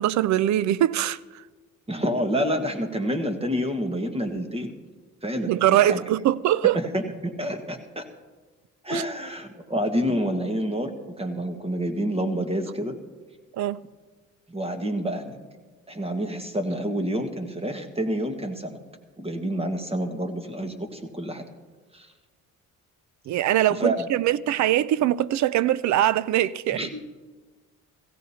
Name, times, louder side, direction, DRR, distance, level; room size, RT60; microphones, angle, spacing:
voice 1, 0.0-1.5 5.4-6.8 8.9-9.0 13.5-13.8 23.3-26.9, right 12 dB, 70° right, 0.5 m, -22 dB
voice 2, 1.9-4.7 5.2-6.0 6.7-8.1 8.8-10.9 11.2-13.0 14.5-15.4 15.9-18.8 19.2-21.5 21.9-22.1 23.8-24.1 26.7-27.0, equal, 20° right, 1.5 m, -28 dB
17.0 x 16.0 x 2.8 m
cardioid pair, 90°, 30 cm